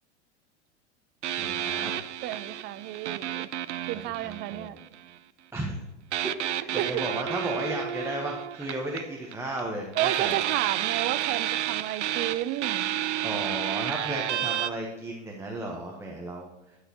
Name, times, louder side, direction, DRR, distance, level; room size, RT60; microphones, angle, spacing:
sound 1, 1.2-5.1 6.1-9.6 9.9-14.7, right 11 dB, 80° right, 0.5 m, -31 dB
voice 1, 1.4-1.9 3.9-4.8 5.5-5.8 6.5-10.3 13.2-16.8, right 1 dB, 5° right, 1.2 m, -34 dB
voice 2, 2.2-3.5 3.9-4.8 6.8-7.0 10.0-13.0, right 14 dB, 30° right, 0.4 m, -32 dB
10.5 x 6.5 x 3.0 m
hypercardioid pair, 95°, 35 cm